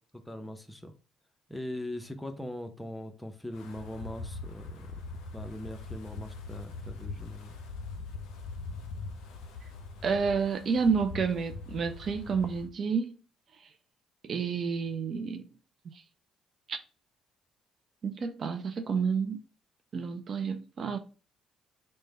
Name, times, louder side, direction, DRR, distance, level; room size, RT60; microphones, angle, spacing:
voice 1, 0.3-0.9 1.5-4.9 5.3-7.5, left 1 dB, 10° left, 0.7 m, -40 dB
Wind, 3.5-12.7, left 3 dB, 70° left, 0.5 m, -42 dB
voice 2, 10.0-13.2 14.2-15.4 16.7-16.8 18.0-19.4 19.9-21.0, right 5 dB, 50° right, 0.4 m, -30 dB
3.2 x 2.1 x 4.1 m
hypercardioid pair, 50°, 0 cm